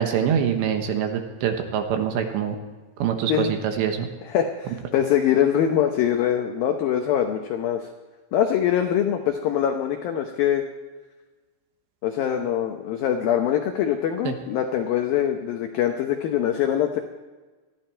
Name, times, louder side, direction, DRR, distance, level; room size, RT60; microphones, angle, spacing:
voice 1, 0.0-2.6 3.0-4.1 14.2-14.3, right 8 dB, 75° right, 5 dB, 3.4 m, -24 dB
voice 2, 4.3-7.9 8.3-10.6 12.0-17.0, left 10 dB, 85° left, 5 dB, 2.0 m, -23 dB
20.5 x 14.5 x 4.5 m, 1.3 s
omnidirectional pair, 5.5 m